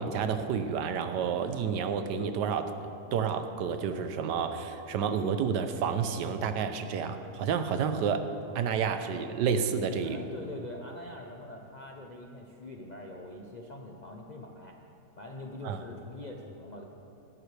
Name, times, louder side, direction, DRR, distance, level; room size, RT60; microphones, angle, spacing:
voice 1, 0.0-2.7 3.1-8.3 8.5-10.2 15.6-15.8, right 6 dB, 80° right, 9 dB, 1.3 m, -30 dB
voice 2, 10.0-14.8 15.2-16.8, left 1 dB, 50° left, 0 dB, 0.5 m, -43 dB
18.0 x 11.0 x 3.3 m, 2.8 s
omnidirectional pair, 1.8 m